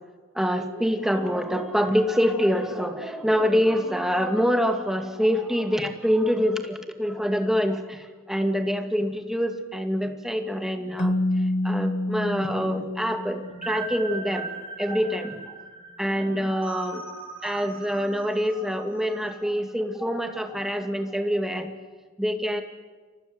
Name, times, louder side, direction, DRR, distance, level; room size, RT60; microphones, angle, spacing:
voice 1, 0.3-14.5 14.8-15.5 16.0-21.7 22.2-22.6, equal, ahead, 5 dB, 2.3 m, -25 dB
Keyboard (musical), 11.0-13.7, left 1 dB, 35° left, 0.8 m, -27 dB
sound 1, 13.4-19.4, right 4 dB, 25° right, 6.1 m, -39 dB
30.0 x 24.5 x 8.1 m, 1.4 s
head